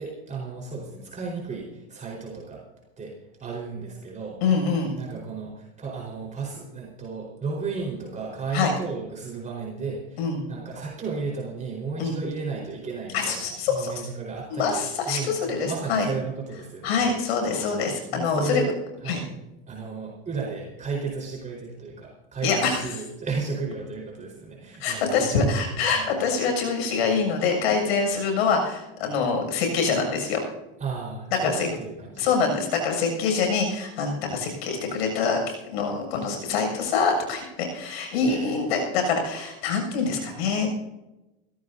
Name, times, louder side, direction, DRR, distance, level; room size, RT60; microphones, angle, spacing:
voice 1, 0.0-2.6 3.0-4.4 4.9-14.8 15.1-17.0 17.5-17.8 18.1-18.8 19.0-19.3 19.7-25.6 25.9-26.1 30.8-32.3 38.2-38.5, right 4 dB, 25° right, -3 dB, 4.6 m, -34 dB
voice 2, 4.4-4.9 8.5-8.7 10.2-10.4 12.0-12.2 13.1-13.9 14.5-16.1 16.8-18.6 19.1-19.2 22.4-22.8 24.8-30.4 31.4-31.7 32.2-35.4 35.7-40.7, left 5 dB, 80° left, 3 dB, 7.1 m, -25 dB
22.5 x 16.0 x 2.7 m, 0.98 s
supercardioid pair, 115°, 31 cm